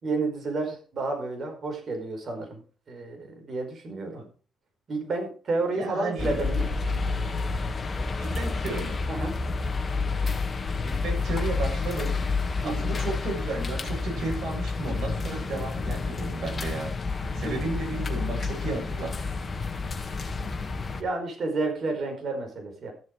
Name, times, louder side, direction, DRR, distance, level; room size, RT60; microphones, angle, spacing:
voice 1, 0.0-2.6 2.9-4.2 4.9-6.7 9.1-9.3 12.6-12.9 17.4-17.7 21.0-22.9, right 3 dB, 50° right, 4 dB, 4.9 m, -31 dB
voice 2, 5.7-6.4 8.2-9.0 10.8-12.2 12.6-19.2, right 3 dB, 65° right, 1 dB, 7.4 m, -34 dB
sound 1, 6.2-21.0, left 4 dB, 35° left, 2.2 m, -29 dB
15.0 x 7.4 x 4.8 m, 0.38 s
cardioid pair, 90°, 0 cm